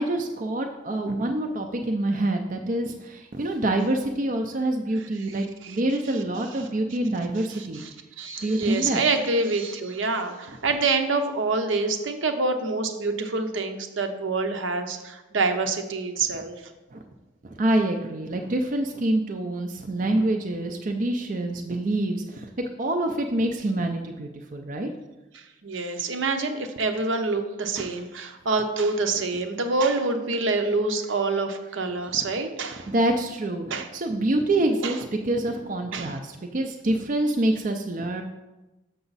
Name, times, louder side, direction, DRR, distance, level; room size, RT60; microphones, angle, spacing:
voice 1, 0.0-7.8 8.4-9.0 10.5-10.6 16.9-17.0 17.4-24.9 27.8-27.9 32.9-38.2, right 1 dB, 40° right, 3 dB, 0.5 m, -26 dB
voice 2, 8.2-16.5 25.6-32.9 33.7-33.9 34.8-34.9 35.9-36.1, right 3 dB, 75° right, 6 dB, 0.7 m, -26 dB
6.9 x 6.2 x 4.0 m, 1.1 s
head